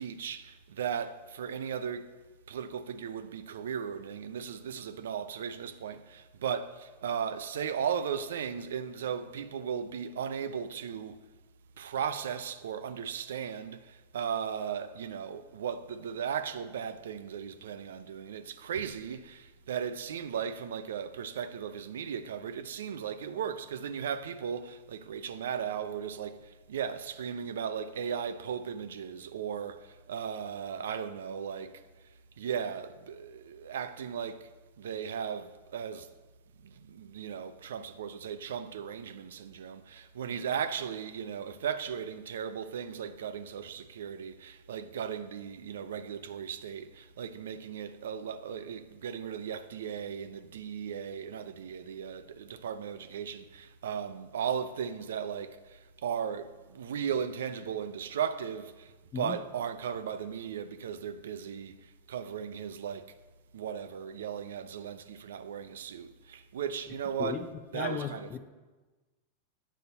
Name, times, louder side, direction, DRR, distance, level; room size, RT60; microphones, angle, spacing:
voice 1, 0.0-2.1 2.5-11.2 11.8-26.4 26.7-31.8 32.4-34.5 34.8-36.1 36.6-55.6 56.0-58.9 59.1-61.8 62.1-63.1 63.5-67.5 67.7-68.4, right 7 dB, 80° right, 0.4 m, -36 dB
voice 2, 67.7-68.4, left 8 dB, 35° left, 0.5 m, -35 dB
8.2 x 4.1 x 5.4 m
hypercardioid pair, 105°, 0 cm